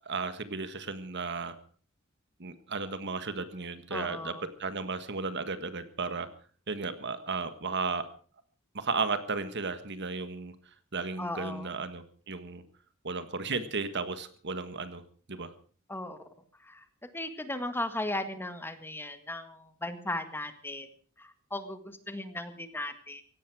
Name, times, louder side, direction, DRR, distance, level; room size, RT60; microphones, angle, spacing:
voice 1, 0.1-1.6 2.4-4.3 4.6-6.3 6.7-8.1 8.7-10.5 10.9-12.6 13.0-15.0 15.3-15.5, right 4 dB, 55° right, 11 dB, 1.6 m, -34 dB
voice 2, 3.9-4.5 11.2-11.8 15.9-16.2 16.6-16.8 17.1-20.9 21.2-23.2, left 1 dB, 10° left, 8 dB, 1.7 m, -37 dB
17.5 x 17.0 x 4.9 m, 0.43 s
head